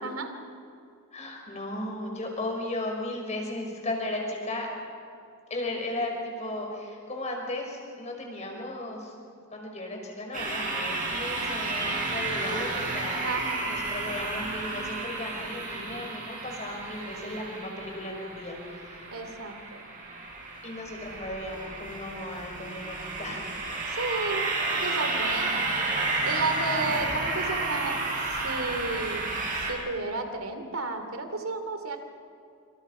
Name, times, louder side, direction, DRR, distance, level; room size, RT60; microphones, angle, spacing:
voice 1, 1.1-4.7 5.5-9.1 9.5-13.3 13.6-19.1 20.6-23.4 26.9-27.0, left 1 dB, 30° left, 1 dB, 5.4 m, -35 dB
sound 1, 10.3-29.7, right 3 dB, 35° right, 7.2 m, -32 dB
voice 2, 13.2-13.7 19.1-19.8 23.9-25.7 26.2-28.0 28.3-29.3 29.7-32.0, right 3 dB, 75° right, 7 dB, 2.9 m, -32 dB
27.0 x 27.0 x 5.7 m, 2.6 s
head